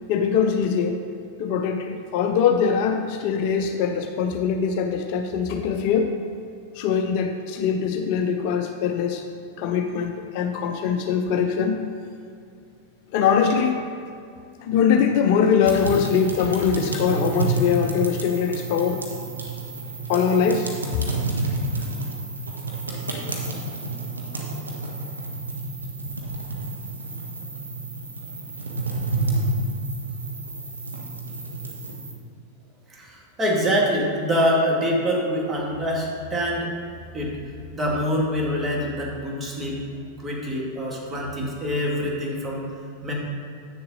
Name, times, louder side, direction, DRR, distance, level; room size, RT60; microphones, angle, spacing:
voice 1, 0.1-1.0 1.4-6.1 6.8-9.2 9.6-11.9 13.1-13.8 14.6-19.0 20.1-20.7, left 7 dB, 45° left, 5 dB, 0.5 m, -22 dB
sound 1, 15.6-32.1, right 2 dB, 75° right, 1.2 m, -30 dB
voice 2, 32.9-36.7 37.1-37.4 37.7-39.8 40.2-42.6 43.0-43.1, equal, 15° right, -2 dB, 1.9 m, -25 dB
8.3 x 6.7 x 4.0 m, 2.5 s
figure-of-eight pair, 90°, 0 cm